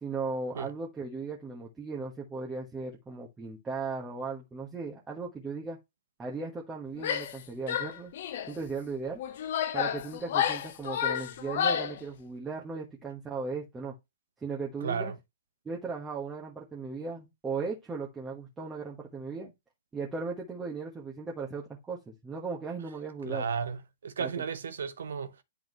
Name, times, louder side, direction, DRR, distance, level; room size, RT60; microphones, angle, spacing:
voice 1, 0.0-5.8 6.2-8.1 8.5-9.2 9.7-13.9 14.4-15.1 15.6-19.5 19.9-23.4 24.2-24.4, right 4 dB, 10° right, 1.3 m, -37 dB
Female speech woman speaking / Yell, 7.0-7.4 7.7-8.5 9.2-12.0, left 9 dB, 50° left, 0.6 m, -30 dB
voice 2, 14.8-15.2 23.3-25.4, right 6 dB, 60° right, 1.0 m, -34 dB
10.5 x 3.8 x 3.1 m
figure-of-eight pair, 110°, 0 cm